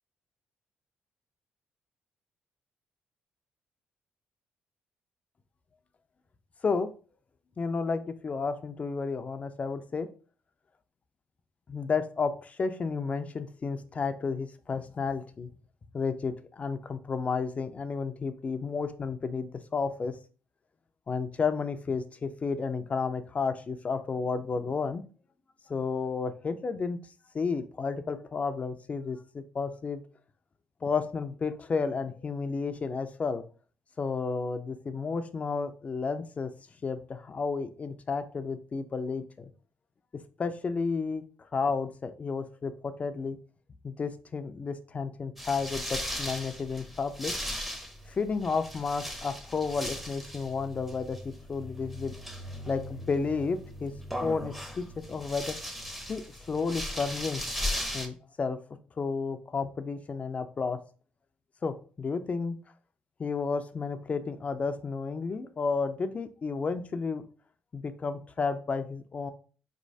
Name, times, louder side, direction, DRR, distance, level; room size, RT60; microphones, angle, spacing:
voice 1, 7.6-10.1 11.7-15.5 15.9-20.1 21.1-25.0 25.7-27.0 27.3-30.0 30.8-33.4 34.0-36.5 36.8-39.5 40.4-41.2 41.5-43.4 43.8-47.3 48.1-52.1 52.7-53.9 54.2-55.6 56.1-57.4 57.9-58.6 59.0-60.8 61.6-62.6 63.2-67.2 67.7-69.3, left 4 dB, 40° left, 9 dB, 0.5 m, -32 dB
sound 1, 45.4-58.1, equal, 5° right, 0.8 m, -38 dB
4.3 x 3.1 x 2.7 m, 0.39 s
supercardioid pair, 70°, 4 cm